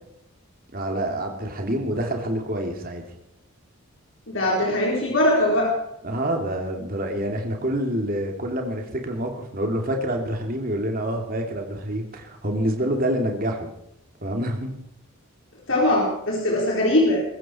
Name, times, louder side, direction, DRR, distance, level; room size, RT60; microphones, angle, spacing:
voice 1, 0.7-3.0 6.0-13.7 14.2-14.7, right 1 dB, 40° right, 3 dB, 2.9 m, -27 dB
voice 2, 4.3-5.7 15.7-17.2, left 1 dB, 60° left, -3 dB, 4.2 m, -21 dB
22.0 x 14.0 x 4.5 m, 0.80 s
head